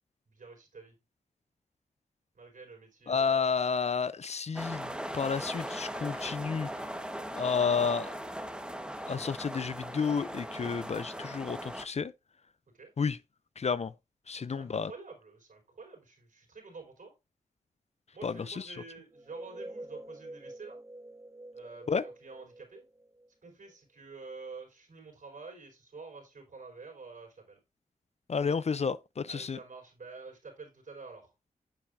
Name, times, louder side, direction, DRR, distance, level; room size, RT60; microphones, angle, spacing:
voice 1, 0.3-1.0 2.3-3.5 12.7-12.9 14.3-17.1 18.1-20.8 21.5-22.9 23.4-27.6 29.3-31.3, right 4 dB, 65° right, 4.8 m, -48 dB
voice 2, 3.1-6.7 7.4-8.1 9.1-12.1 13.0-13.2 13.6-13.9 14.3-14.9 18.2-18.6 21.9-22.0 28.3-29.6, left 5 dB, 45° left, 0.5 m, -31 dB
sound 1, 4.5-11.8, equal, 5° right, 1.2 m, -39 dB
sound 2, 19.1-23.7, right 1 dB, 25° right, 1.1 m, -47 dB
9.4 x 7.1 x 2.6 m
cardioid pair, 45°, 15 cm